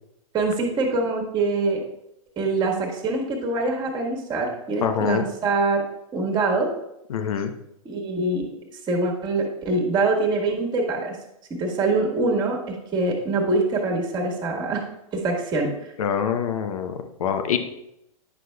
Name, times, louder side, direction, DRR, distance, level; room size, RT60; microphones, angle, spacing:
voice 1, 0.3-1.8 2.4-5.8 6.1-6.7 7.8-8.5 8.9-11.2 11.5-14.8 15.1-15.9, right 3 dB, 25° right, 0 dB, 1.6 m, -24 dB
voice 2, 4.8-5.2 7.1-7.5 16.0-17.6, left 7 dB, 75° left, 7 dB, 0.8 m, -25 dB
9.9 x 6.1 x 2.3 m, 0.81 s
hypercardioid pair, 120°, 18 cm